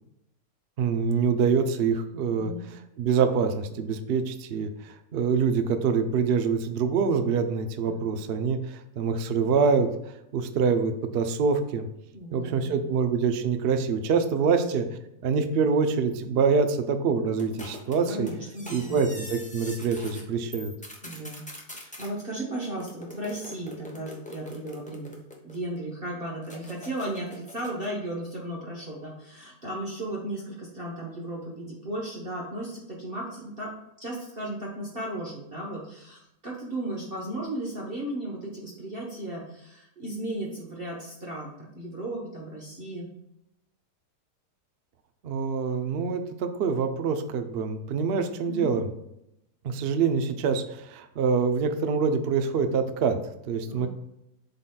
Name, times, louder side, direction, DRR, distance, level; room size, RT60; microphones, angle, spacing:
voice 1, 0.8-2.5 3.0-9.9 10.3-11.9 12.3-14.9 15.2-18.3 18.7-20.7 45.2-48.9 49.6-53.2 53.4-53.9, right 5 dB, 70° right, 8 dB, 0.5 m, -25 dB
voice 2, 2.4-2.7 7.8-8.0 12.1-12.9 14.4-14.7 18.1-19.0 21.0-21.4 21.7-25.2 25.4-43.1 48.5-48.7 53.6-53.9, right 1 dB, 40° right, -3 dB, 1.2 m, -35 dB
sound 1, 17.4-20.2 20.5-22.1 22.8-25.8 26.4-27.9, left 1 dB, 10° left, 0.4 m, -43 dB
11.0 x 4.0 x 2.3 m, 0.84 s
omnidirectional pair, 1.8 m